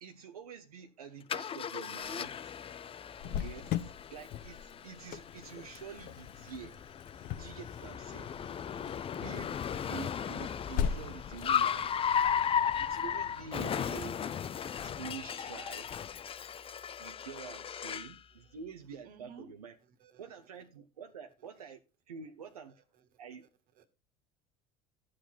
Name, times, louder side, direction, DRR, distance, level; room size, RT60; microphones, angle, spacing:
voice 1, 0.0-2.6 3.3-6.8 7.4-8.3 9.1-12.0 12.8-14.4 14.8-15.9 17.0-19.7 20.2-21.8 22.1-22.7 23.2-23.4, right 7 dB, 80° right, 1.1 m, -47 dB
Car, 1.3-18.2, left 8 dB, 30° left, 0.7 m, -36 dB
Cricket, 3.2-14.7, left 8 dB, 50° left, 1.0 m, -41 dB
voice 2, 19.0-19.5 19.8-20.3 22.7-23.1 23.8-23.9, right 5 dB, 50° right, 2.0 m, -56 dB
12.5 x 7.7 x 4.3 m
figure-of-eight pair, 65°, 19 cm